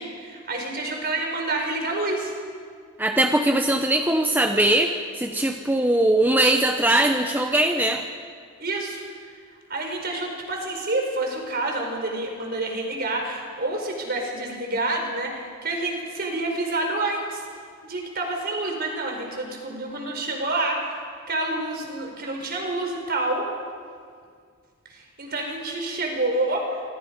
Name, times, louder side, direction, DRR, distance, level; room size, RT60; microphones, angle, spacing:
voice 1, 0.0-2.3 8.6-9.0 9.7-17.4 17.8-23.5 24.9-26.8, right 2 dB, 50° right, 2 dB, 4.8 m, -28 dB
voice 2, 3.0-8.0, right 1 dB, 10° right, 4 dB, 0.9 m, -21 dB
26.5 x 26.5 x 5.4 m, 2.1 s
head